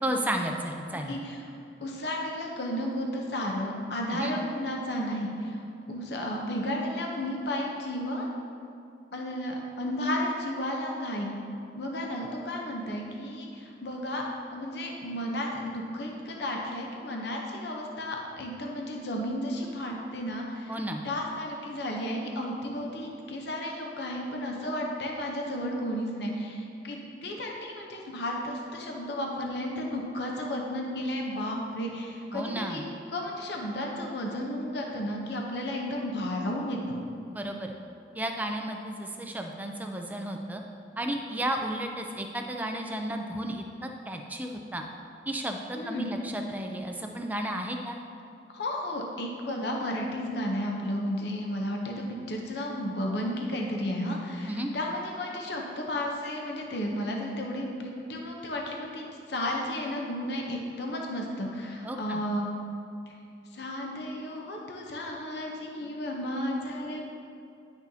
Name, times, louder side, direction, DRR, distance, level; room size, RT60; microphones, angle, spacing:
voice 1, 0.0-1.2 4.1-4.4 20.7-21.0 32.3-32.8 37.3-37.7 38.1-40.6 41.0-44.8 45.3-48.0 54.4-54.7 61.8-62.2, right 1 dB, 10° right, 3 dB, 0.4 m, -33 dB
voice 2, 1.1-1.4 1.8-5.6 5.9-8.3 9.1-11.4 11.7-14.2 14.5-20.7 21.0-32.8 33.1-37.0 45.7-46.1 48.5-62.5 63.1-63.2 63.5-67.0, left 1 dB, 65° left, 0 dB, 0.7 m, -33 dB
10.0 x 6.1 x 2.7 m, 2.6 s
head